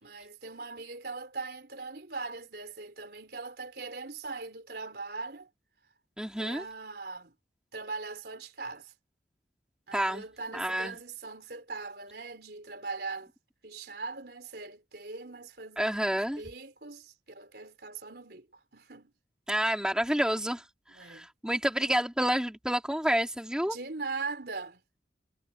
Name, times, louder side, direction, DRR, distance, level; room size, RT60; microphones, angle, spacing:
voice 1, 0.0-5.5 6.4-7.3 7.7-8.9 9.9-13.3 13.6-18.5 18.7-19.1 20.9-21.3 23.7-24.8, right 4 dB, 65° right, 3.6 m, -40 dB
voice 2, 6.2-6.6 9.9-10.2 10.5-11.0 15.8-16.4 19.5-20.6 20.9-23.8, equal, 5° right, 2.9 m, -29 dB
head